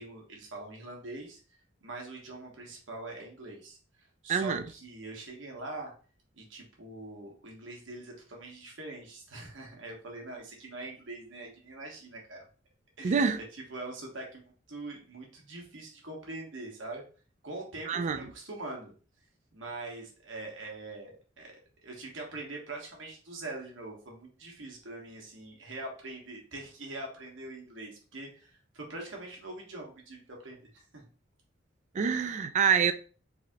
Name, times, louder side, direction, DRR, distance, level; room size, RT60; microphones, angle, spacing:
voice 1, 0.0-1.4 1.8-5.9 6.4-12.5 13.0-13.3 13.5-17.0 17.4-18.9 19.5-21.5 21.8-31.0, right 2 dB, 70° right, 1.2 m, -43 dB
voice 2, 4.3-4.6 13.0-13.4 17.9-18.3 31.9-32.9, right 6 dB, 40° right, 0.3 m, -26 dB
3.4 x 2.7 x 3.5 m
head